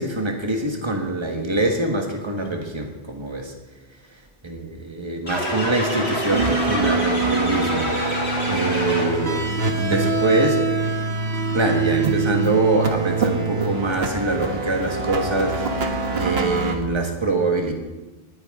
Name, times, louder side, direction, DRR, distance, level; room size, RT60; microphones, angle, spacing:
voice 1, 0.0-3.5 4.4-9.5 9.8-10.6 11.5-17.7, right 2 dB, 25° right, 3 dB, 1.5 m, -24 dB
sound 1, 5.3-9.4, equal, 80° left, 4.4 m, -26 dB
sound 2, 6.3-16.7, right 4 dB, 70° right, 1.5 m, -24 dB
19.0 x 9.6 x 3.7 m, 1.2 s
omnidirectional pair, 1.1 m